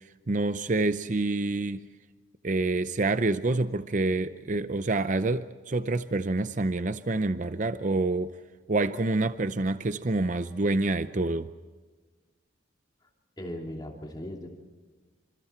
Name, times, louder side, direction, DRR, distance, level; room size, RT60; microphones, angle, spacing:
voice 1, 0.3-1.9 2.4-8.3 8.7-11.5, right 2 dB, 40° right, 11 dB, 0.6 m, -27 dB
voice 2, 13.4-14.6, left 1 dB, 20° left, 0 dB, 2.9 m, -38 dB
28.0 x 27.5 x 4.5 m, 1.4 s
head